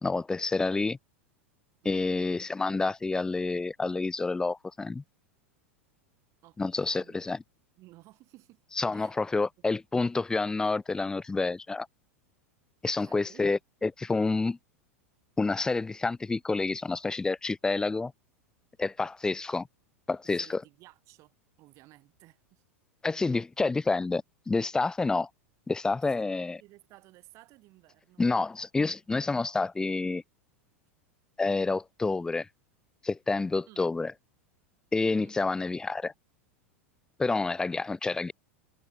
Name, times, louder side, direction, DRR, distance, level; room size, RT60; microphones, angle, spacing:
voice 1, 0.0-1.0 1.9-5.0 6.6-7.4 8.8-11.9 12.8-14.6 15.4-18.1 18.8-19.7 20.1-20.6 23.0-25.3 25.7-26.6 28.2-30.2 31.4-32.5 33.0-34.1 34.9-36.1 37.2-38.3, left 3 dB, 10° left, 0.4 m, -28 dB
voice 2, 1.8-2.2 6.4-7.2 7.8-8.6 8.9-9.4 12.8-13.4 20.2-21.3 21.6-22.6 26.0-26.3 26.6-28.2 33.7-33.8 35.2-35.3, right 19 dB, 45° right, 7.2 m, -56 dB
figure-of-eight pair, 85°, 7 cm